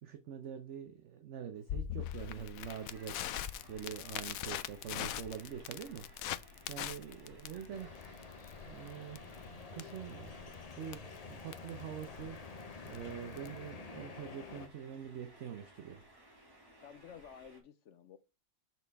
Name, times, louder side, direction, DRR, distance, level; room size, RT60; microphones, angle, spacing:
voice 1, 0.0-3.4 3.7-6.1 6.7-7.9 8.6-10.5 10.8-11.0 11.3-12.4 12.8-16.0, right 8 dB, 65° right, 1.0 m, -45 dB
Crackle, 1.7-13.7, left 11 dB, 85° left, 1.0 m, -43 dB
sound 1, 2.6-17.6, right 1 dB, 15° right, 1.7 m, -60 dB
voice 2, 7.5-8.1 16.8-18.2, left 8 dB, 65° left, 0.9 m, -54 dB
sound 2, 7.7-14.7, left 4 dB, 35° left, 0.8 m, -49 dB
6.1 x 5.9 x 3.4 m
omnidirectional pair, 1.4 m